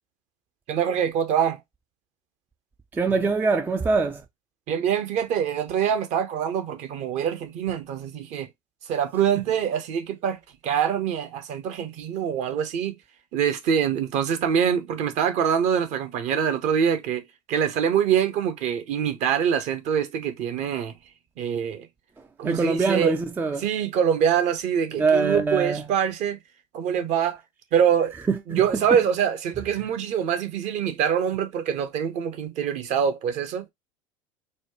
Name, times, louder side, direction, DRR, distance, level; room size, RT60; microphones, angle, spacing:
voice 1, 0.7-1.6 4.7-8.5 8.9-10.4 10.6-13.0 13.3-20.9 21.4-21.9 22.4-23.1 23.6-26.4 26.7-27.4 27.7-28.1 28.5-33.6, right 8 dB, 45° right, 0.8 m, -24 dB
voice 2, 2.9-4.2 22.4-23.6 25.0-25.8 28.3-28.8, right 4 dB, 10° right, 0.3 m, -23 dB
4.3 x 2.2 x 3.0 m
figure-of-eight pair, 70°, 17 cm